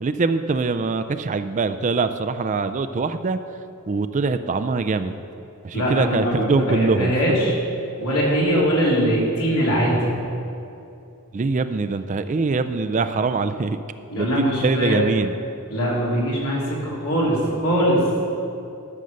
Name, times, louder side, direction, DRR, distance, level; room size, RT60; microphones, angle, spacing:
voice 1, 0.0-3.4 3.9-5.2 5.6-7.1 11.3-13.8 14.1-15.3, right 4 dB, 35° right, 10 dB, 0.4 m, -23 dB
voice 2, 5.7-7.5 8.0-10.1 14.1-15.0 15.7-18.1, equal, 75° left, -4 dB, 3.0 m, -21 dB
13.5 x 6.7 x 6.4 m, 2.7 s
head